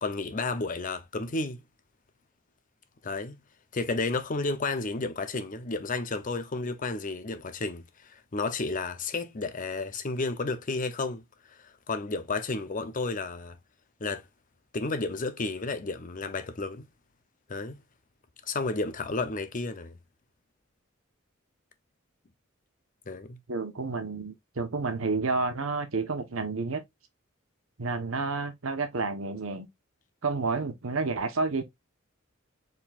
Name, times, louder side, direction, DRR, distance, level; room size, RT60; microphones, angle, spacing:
voice 1, 0.0-1.6 3.0-3.4 3.7-11.2 11.5-13.6 14.0-14.2 14.7-16.9 17.5-17.8 18.5-19.9 23.1-23.4, left 3 dB, 40° left, 0.7 m, -32 dB
voice 2, 23.5-26.8 27.8-29.7 30.2-31.6, right 3 dB, 80° right, 1.0 m, -30 dB
4.4 x 3.7 x 2.4 m
head